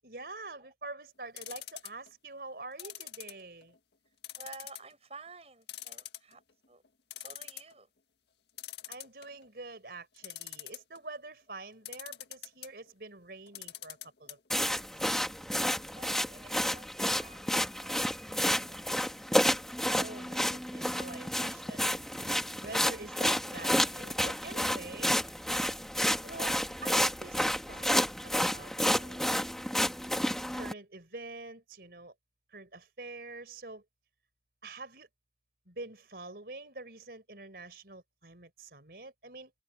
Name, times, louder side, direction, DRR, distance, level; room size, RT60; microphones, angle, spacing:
voice 1, 0.0-3.8 8.9-15.1 19.9-22.0 22.6-25.1 26.2-29.3 30.5-32.1 32.5-33.8 34.6-35.1 35.7-39.5, right 2 dB, 60° right, 4.4 m, -46 dB
sound 1, 1.4-2.1 2.8-3.8 4.2-4.9 5.3-5.4 5.7-6.5 6.8-6.9 7.1-7.7 8.6-9.5 10.2-11.0 11.9-12.7 13.5-14.3 14.6-14.7 15.0-15.1, left 13 dB, 70° left, 1.9 m, -43 dB
voice 2, 4.4-6.4 6.7-6.8 7.2-7.9 15.9-17.5 17.8-18.0 18.4-18.9, right 3 dB, 35° right, 6.8 m, -51 dB
sound 2, 14.5-30.7, equal, ahead, 1.7 m, -30 dB
open air
head